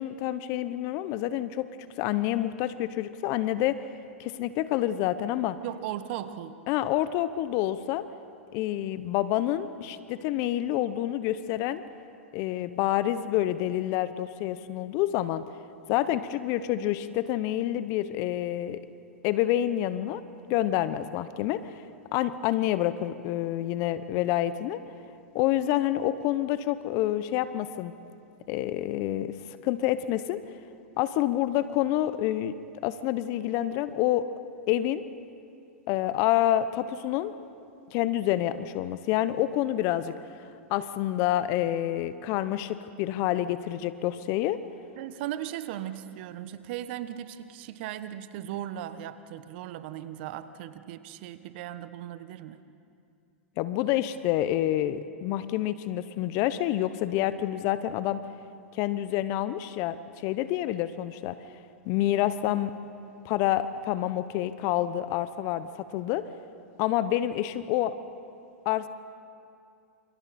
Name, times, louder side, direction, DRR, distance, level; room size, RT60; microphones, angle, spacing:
voice 1, 0.0-1.7 2.0-3.8 4.2-5.6 6.7-8.1 8.5-11.8 12.3-15.4 15.9-18.8 19.2-20.2 20.5-21.8 22.1-24.8 25.3-27.9 28.5-30.4 31.0-32.5 32.8-34.3 34.7-35.0 35.9-37.3 37.9-40.1 40.7-44.6 53.6-58.2 58.7-61.4 61.8-62.7 63.2-66.2 66.8-67.9 68.6-68.9, left 13 dB, 45° left, 13 dB, 0.9 m, -28 dB
voice 2, 5.6-6.6 45.0-52.6, right 12 dB, 55° right, 12 dB, 1.2 m, -37 dB
29.0 x 28.5 x 4.3 m, 2.5 s
hypercardioid pair, 105°, 7 cm